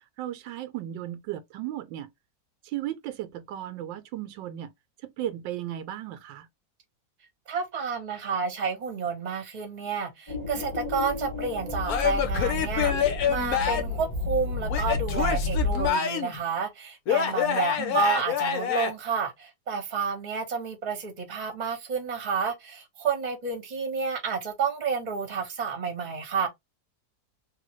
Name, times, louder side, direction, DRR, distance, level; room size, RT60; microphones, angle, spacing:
voice 1, 0.2-2.1 2.7-4.7 5.2-6.5 17.8-18.0, right 12 dB, 85° right, 1.3 m, -35 dB
voice 2, 7.5-26.5, right 5 dB, 30° right, 1.0 m, -30 dB
sound 1, 10.3-15.9, left 3 dB, 25° left, 1.1 m, -31 dB
Male speech man speaking / Yell / Laughter, 11.9-14.0 14.7-16.4 17.1-18.9, left 8 dB, 65° left, 1.0 m, -27 dB
3.3 x 2.7 x 3.0 m
omnidirectional pair, 2.0 m